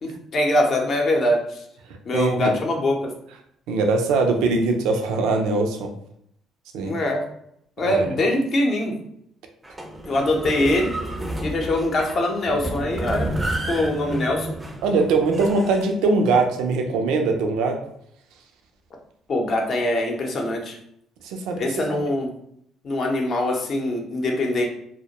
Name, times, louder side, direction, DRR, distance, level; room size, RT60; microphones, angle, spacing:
voice 1, 0.0-1.6 2.0-3.1 6.8-7.2 7.8-9.0 10.1-10.9 11.4-13.3 13.7-14.5 19.3-20.8 21.6-22.3 22.8-24.7, left 1 dB, 55° left, 1 dB, 0.6 m, -23 dB
voice 2, 2.1-2.5 3.7-5.9 6.7-6.9 7.8-8.0 14.8-17.8 21.2-21.7, right 3 dB, 80° right, 3 dB, 0.4 m, -21 dB
sound 1, 9.6-15.9, right 1 dB, 15° right, 0.4 m, -30 dB
2.1 x 2.1 x 2.8 m, 0.71 s
supercardioid pair, 75°, 0 cm